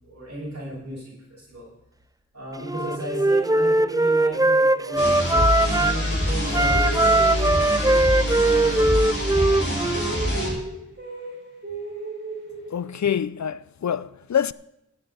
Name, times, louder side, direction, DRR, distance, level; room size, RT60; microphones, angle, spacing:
voice 1, 0.0-1.7 2.3-5.2 5.6-9.4, right 1 dB, 60° right, 5.8 m, -36 dB
Wind instrument woodwind instrument, 2.6-6.0 6.5-10.1, right 2 dB, 15° right, 0.4 m, -20 dB
sound 1, 3.3-6.1 6.4-9.3 9.6-13.1, right 2 dB, 40° right, 4.9 m, -35 dB
sound 2, 5.0-10.5, equal, 50° left, 5.2 m, -25 dB
voice 2, 12.7-14.5, left 8 dB, 70° left, 0.4 m, -26 dB
14.5 x 9.5 x 4.1 m
wide cardioid pair, 45°, 29 cm